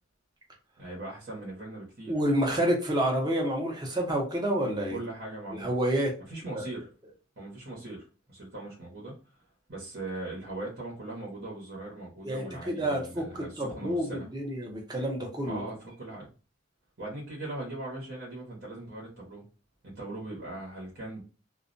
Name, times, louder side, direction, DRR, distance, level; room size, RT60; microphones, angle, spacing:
voice 1, 0.8-2.1 4.9-5.7 6.3-6.9 7.4-9.1 9.7-14.3 15.4-16.3 17.0-19.4 19.8-21.2, right 2 dB, 55° right, -4 dB, 1.0 m, -40 dB
voice 2, 2.1-5.0 5.5-6.1 6.5-6.7 12.2-15.6, right 1 dB, 20° right, 0 dB, 0.7 m, -29 dB
2.3 x 2.1 x 2.5 m, 0.34 s
head